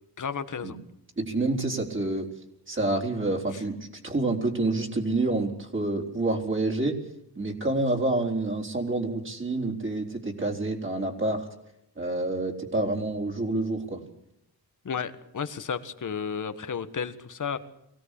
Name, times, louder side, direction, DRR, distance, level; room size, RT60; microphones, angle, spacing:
voice 1, 0.2-0.8 14.8-17.6, left 6 dB, 50° left, 10 dB, 1.7 m, -32 dB
voice 2, 1.2-2.3 2.7-3.8 4.0-7.0 7.4-11.5 12.0-14.0, right 2 dB, 30° right, 0 dB, 4.2 m, -28 dB
24.0 x 17.0 x 8.5 m, 0.81 s
wide cardioid pair, 120°, 39 cm